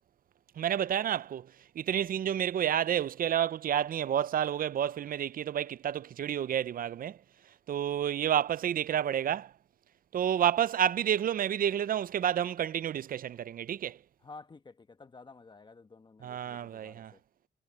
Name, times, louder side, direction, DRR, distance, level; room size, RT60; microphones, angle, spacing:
voice 1, 0.6-1.5 1.8-7.2 7.7-9.5 10.1-14.0 16.2-17.1, right 10 dB, 55° right, 0.5 m, -30 dB
voice 2, 14.2-17.2, left 3 dB, 25° left, 1.0 m, -52 dB
cardioid pair, 125°, 18 cm